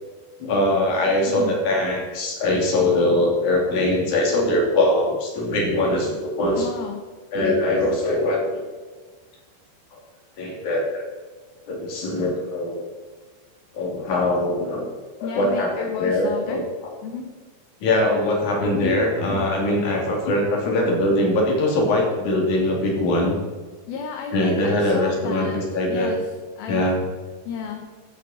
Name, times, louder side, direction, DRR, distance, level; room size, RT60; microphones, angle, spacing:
voice 1, 0.4-6.7 7.3-8.6 9.9-10.0 10.4-11.0 11.7-12.8 13.7-14.9 15.3-16.6 17.8-23.4 24.3-26.1 26.7-27.0, left 1 dB, 50° left, -1 dB, 3.8 m, -22 dB
voice 2, 1.3-1.6 6.6-7.0 15.2-16.6 17.0-17.3 23.9-25.6 25.9-26.3 26.6-26.9 27.5-27.9, left 6 dB, 70° left, 3 dB, 2.6 m, -32 dB
14.0 x 8.5 x 4.3 m, 1.4 s
omnidirectional pair, 4.9 m